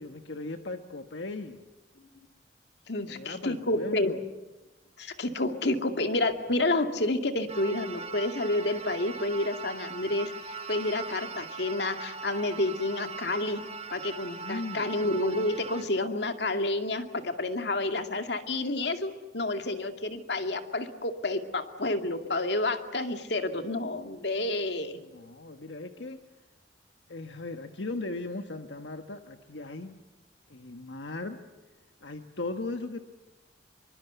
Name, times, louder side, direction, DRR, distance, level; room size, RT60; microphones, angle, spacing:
voice 1, 0.0-1.6 3.1-4.2 14.4-14.9 24.8-26.2 27.1-30.0 30.5-31.4 32.0-33.0, left 2 dB, 85° left, 6 dB, 1.5 m, -38 dB
voice 2, 2.9-4.2 5.0-10.3 10.7-13.6 13.9-25.0, left 2 dB, 70° left, 6 dB, 2.3 m, -29 dB
sound 1, 7.5-15.8, right 5 dB, 35° right, 2.2 m, -40 dB
27.0 x 24.0 x 8.2 m, 1.1 s
head